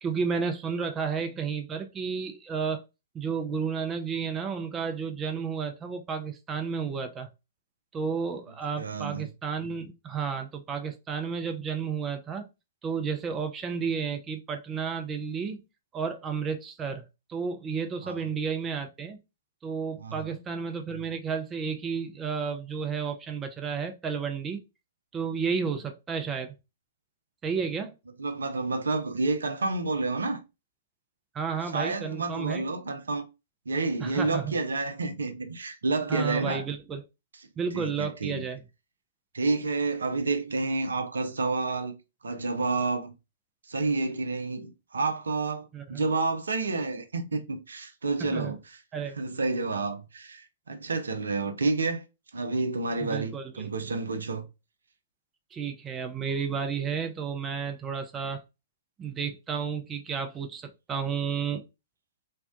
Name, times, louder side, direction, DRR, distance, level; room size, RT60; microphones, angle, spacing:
voice 1, 0.0-2.8 3.1-7.3 7.9-12.5 12.8-15.6 15.9-17.0 17.3-19.2 19.6-24.6 25.1-26.5 27.4-27.9 31.3-32.6 34.0-34.5 36.1-37.0 37.6-38.6 45.7-46.0 48.2-48.5 48.9-49.2 53.0-53.7 55.5-58.4 59.0-61.6, right 6 dB, 20° right, 0.4 m, -32 dB
voice 2, 8.8-9.3 18.0-18.3 20.0-20.4 28.2-30.4 31.7-33.3 33.7-36.6 37.3-37.5 37.7-38.5 39.3-42.0 42.2-43.1 43.7-48.8 49.1-52.0 52.3-54.5, right 3 dB, 75° right, 0.4 m, -29 dB
2.6 x 2.1 x 2.4 m
figure-of-eight pair, 115°, 0 cm